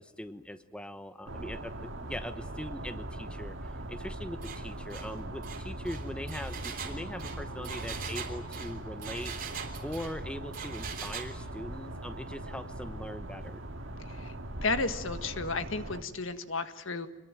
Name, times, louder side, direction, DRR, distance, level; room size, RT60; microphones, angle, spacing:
voice 1, 0.0-9.4 9.8-13.6, left 1 dB, 5° left, 10 dB, 1.0 m, -41 dB
sound 1, 1.3-16.0, right 1 dB, 70° right, 1.9 m, -40 dB
Engine, 4.4-4.6 4.9-5.1 5.4-10.2 10.5-11.3, right 6 dB, 45° right, 3.5 m, -41 dB
voice 2, 14.6-17.1, left 3 dB, 75° left, 10 dB, 1.7 m, -33 dB
26.5 x 21.5 x 9.2 m, 0.98 s
head